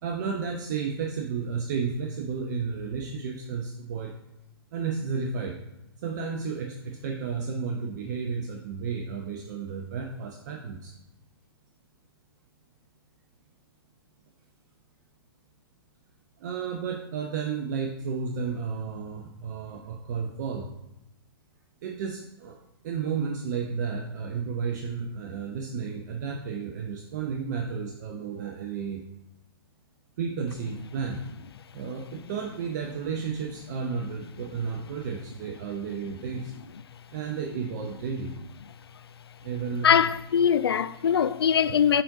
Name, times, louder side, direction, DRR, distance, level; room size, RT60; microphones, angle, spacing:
voice 1, 0.0-4.2 4.7-5.6 6.0-10.9 16.4-20.7 21.8-22.6 22.8-29.0 30.2-31.2 31.7-36.5 37.1-38.3 39.4-40.0, right 5 dB, 45° right, 0.7 m, -32 dB
voice 2, 39.8-42.0, left 8 dB, 75° left, 0.4 m, -22 dB
8.5 x 3.9 x 3.8 m
figure-of-eight pair, 120°, 13 cm